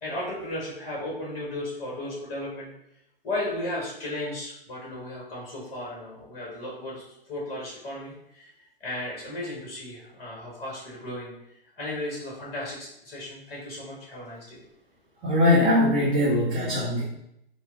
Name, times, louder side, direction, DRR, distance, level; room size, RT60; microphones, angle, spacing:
voice 1, 0.0-2.7 3.2-8.5 8.8-14.6, left 1 dB, 25° left, -4 dB, 1.1 m, -35 dB
voice 2, 15.2-17.0, left 1 dB, 20° right, -6 dB, 0.7 m, -21 dB
4.3 x 2.1 x 3.6 m, 0.79 s
figure-of-eight pair, 115°, 30 cm